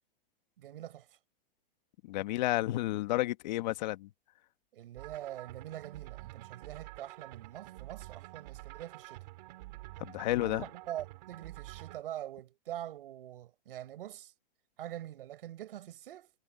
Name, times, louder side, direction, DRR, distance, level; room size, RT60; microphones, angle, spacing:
voice 1, 0.6-1.2 4.7-9.2 10.4-14.3 14.8-16.3, right 12 dB, 65° right, 4.6 m, -44 dB
voice 2, 2.0-4.1 10.0-10.7, left 17 dB, 45° left, 1.5 m, -31 dB
sound 1, 5.0-12.0, right 20 dB, 45° right, 5.2 m, -48 dB
supercardioid pair, 165°, 30 cm